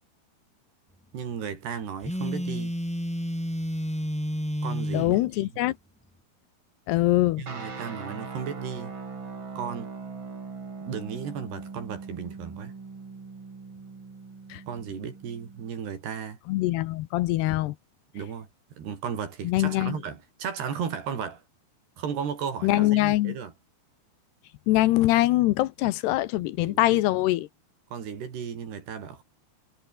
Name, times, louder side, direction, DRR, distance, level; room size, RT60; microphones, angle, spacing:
voice 1, 1.1-2.7 4.6-5.5 7.4-8.9 9.6-9.9 10.9-12.7 14.7-16.4 18.1-18.5 18.8-21.4 22.0-23.5 26.6-27.0 27.9-29.2, right 7 dB, 70° right, 5.8 m, -35 dB
Telephone, 2.0-5.1, equal, ahead, 7.3 m, -30 dB
voice 2, 4.9-5.7 6.9-7.4 14.5-14.6 16.5-17.8 19.4-20.0 22.6-23.4 24.7-27.5, left 17 dB, 75° left, 2.8 m, -23 dB
sound 1, 7.5-15.7, right 4 dB, 30° right, 3.9 m, -40 dB
omnidirectional pair, 5.0 m